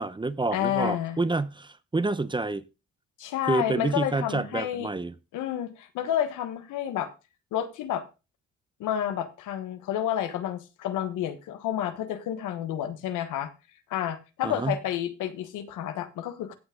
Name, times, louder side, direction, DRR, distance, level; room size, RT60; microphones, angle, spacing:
voice 1, 0.0-2.6 3.5-5.1 14.4-14.8, right 3 dB, 15° right, 0.7 m, -28 dB
voice 2, 0.5-1.2 3.2-4.9 5.3-7.1 7.5-8.0 8.8-13.5 13.9-16.5, left 10 dB, 90° left, 1.4 m, -30 dB
16.0 x 5.9 x 3.7 m
cardioid pair, 90°, 30 cm